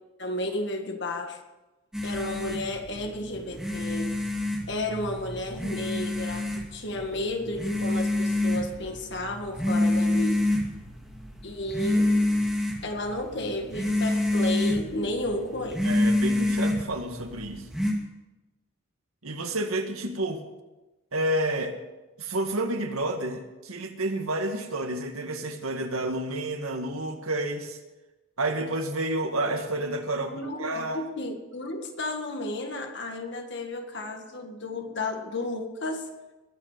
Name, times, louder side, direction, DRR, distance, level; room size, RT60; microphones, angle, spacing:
voice 1, 0.2-1.4 2.0-4.2 4.7-10.5 11.4-12.1 12.8-15.8 30.3-36.2, left 1 dB, 55° left, 4 dB, 2.0 m, -32 dB
sound 1, 1.9-17.9, left 1 dB, 5° right, 2.3 m, -28 dB
voice 2, 15.8-17.6 19.2-20.4 21.1-21.7 22.2-27.8 28.4-30.3 30.6-31.1, right 1 dB, 85° right, 5 dB, 1.9 m, -30 dB
21.5 x 8.0 x 6.8 m, 1.1 s
head